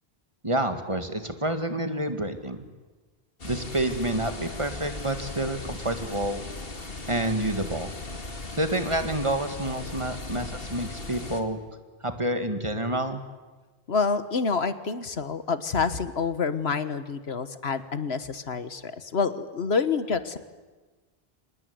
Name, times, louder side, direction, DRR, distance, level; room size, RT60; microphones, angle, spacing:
voice 1, 0.4-2.6 3.4-6.4 7.1-7.9 8.6-11.6 12.0-13.2, right 1 dB, 30° right, 8 dB, 2.0 m, -28 dB
sound 1, 3.4-11.4, left 2 dB, 65° left, 2.5 m, -38 dB
voice 2, 13.9-20.4, left 5 dB, 85° left, 12 dB, 1.6 m, -27 dB
25.5 x 20.0 x 9.5 m, 1.3 s
omnidirectional pair, 1.0 m